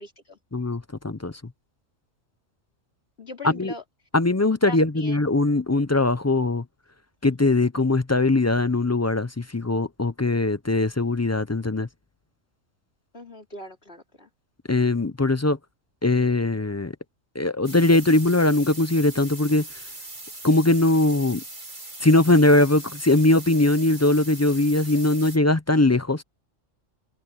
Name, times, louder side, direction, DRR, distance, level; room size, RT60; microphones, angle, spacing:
voice 1, 0.0-0.4 3.2-3.8 4.7-5.2 13.1-14.3, left 1 dB, 50° left, 3.9 m, -40 dB
voice 2, 0.5-1.4 3.6-3.7 4.1-6.6 7.2-11.9 14.7-15.6 16.0-16.9 17.3-19.7 20.4-21.4 22.0-26.2, left 2 dB, 25° left, 0.3 m, -21 dB
sound 1, 17.6-25.4, right 2 dB, 85° right, 7.0 m, -40 dB
omnidirectional pair, 1.3 m